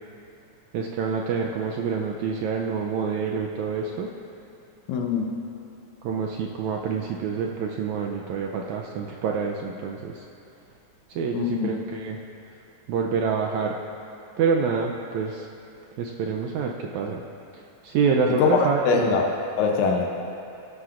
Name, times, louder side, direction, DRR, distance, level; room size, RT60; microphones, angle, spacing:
voice 1, 0.7-4.1 6.0-10.1 11.2-12.2 12.9-13.8 14.4-15.5 16.0-17.2 17.8-19.2, right 5 dB, 80° right, 1 dB, 1.7 m, -27 dB
voice 2, 4.9-5.4 11.3-11.7 18.3-19.3 19.6-20.2, left 5 dB, 75° left, 2 dB, 1.9 m, -23 dB
17.5 x 11.5 x 2.5 m, 2.7 s
omnidirectional pair, 3.8 m